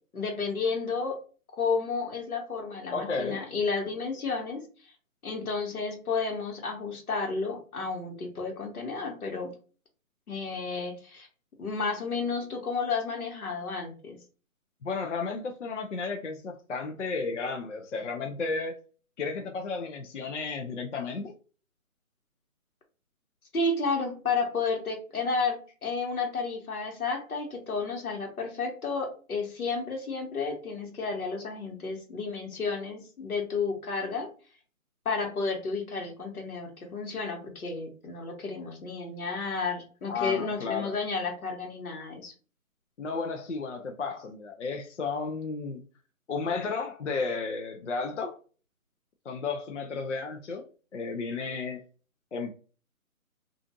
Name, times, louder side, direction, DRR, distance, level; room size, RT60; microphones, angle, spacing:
voice 1, 0.1-1.2 1.5-4.6 5.2-9.5 10.3-11.3 11.6-14.2 23.5-34.3 35.0-42.3, left 4 dB, 90° left, 1.2 m, -32 dB
voice 2, 2.9-3.5 14.8-18.8 19.2-21.3 40.1-40.9 43.0-45.8 46.3-48.4 49.3-50.6 50.9-51.8 52.3-52.5, left 4 dB, 60° left, 0.5 m, -33 dB
2.5 x 2.4 x 2.5 m
hypercardioid pair, 180°, 42 cm